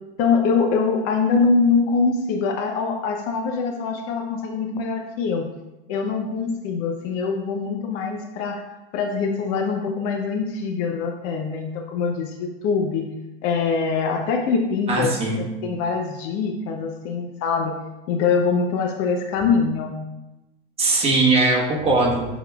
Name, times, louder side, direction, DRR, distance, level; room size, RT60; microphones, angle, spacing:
voice 1, 0.2-5.5 5.9-8.6 8.9-13.1 13.4-15.1 15.6-17.7 18.1-19.9, left 5 dB, 50° left, 3 dB, 0.5 m, -23 dB
voice 2, 14.9-15.4 20.8-22.3, right 2 dB, 20° right, -3 dB, 1.2 m, -20 dB
5.8 x 3.5 x 2.3 m, 0.99 s
hypercardioid pair, 115°, 30 cm